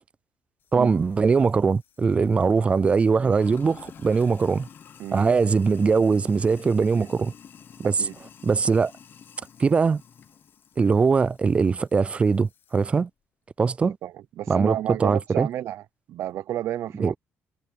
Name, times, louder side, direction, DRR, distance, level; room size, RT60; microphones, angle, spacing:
Sink (filling or washing), 0.6-13.0, left 7 dB, 45° left, 1.0 m, -50 dB
voice 1, 0.7-4.7 5.1-7.3 7.8-8.1 8.4-8.9 9.6-10.0 10.8-13.1 13.6-14.0 14.5-15.5 17.0-17.2, right 5 dB, 25° right, 0.4 m, -21 dB
voice 2, 14.0-15.8 16.1-17.2, right 12 dB, 75° right, 0.6 m, -31 dB
cardioid pair, 120°, 5 cm